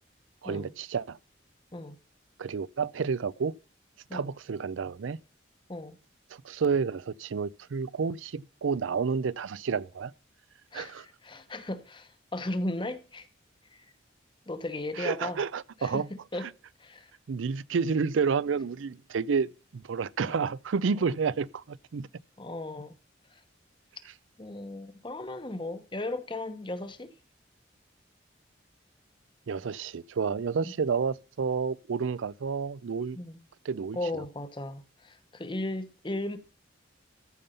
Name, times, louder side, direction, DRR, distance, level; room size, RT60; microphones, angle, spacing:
voice 1, 0.4-1.2 2.4-3.5 4.1-5.2 6.3-10.1 10.7-11.1 15.0-16.1 16.4-16.5 17.3-22.1 29.5-33.2 33.6-34.2, right 5 dB, 85° right, 0.5 m, -30 dB
voice 2, 10.7-13.3 13.7-13.8 14.5-15.4 15.8-16.1 16.3-16.5 16.8-17.1 20.2-20.4 22.4-23.0 24.4-27.1 30.6-30.7 33.1-33.4 33.9-36.4, left 2 dB, 25° left, 0.9 m, -36 dB
14.0 x 5.4 x 5.6 m
head